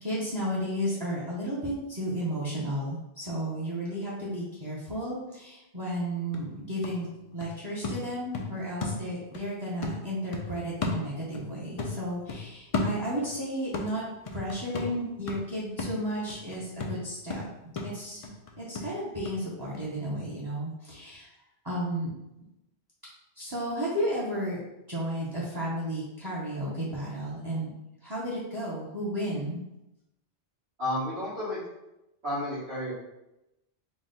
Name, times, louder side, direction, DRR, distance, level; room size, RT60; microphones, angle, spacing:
voice 1, 0.0-7.1 7.3-14.0 14.3-17.4 17.8-18.3 18.6-21.3 21.6-22.1 23.4-24.6 24.9-27.7 28.0-29.6, equal, 25° right, -6 dB, 0.8 m, -33 dB
sound 1, 5.9-6.0 6.3-9.5 9.8-11.5 11.8-13.4 13.7-19.4 19.7-19.8, left 3 dB, 50° left, 0.4 m, -35 dB
voice 2, 30.8-31.6 32.2-32.9, left 1 dB, 80° right, -8 dB, 1.9 m, -31 dB
4.0 x 2.3 x 3.8 m, 0.91 s
omnidirectional pair, 1.1 m